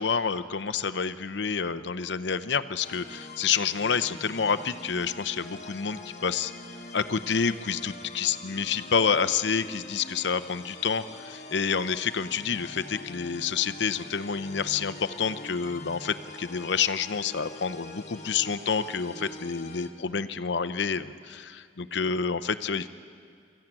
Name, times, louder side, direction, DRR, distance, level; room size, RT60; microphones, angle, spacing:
voice 1, 0.0-6.5 6.9-22.9, left 6 dB, 70° left, 13 dB, 0.7 m, -28 dB
sound 1, 2.8-19.9, left 3 dB, 40° left, 1.6 m, -44 dB
23.5 x 14.0 x 8.9 m, 2.2 s
head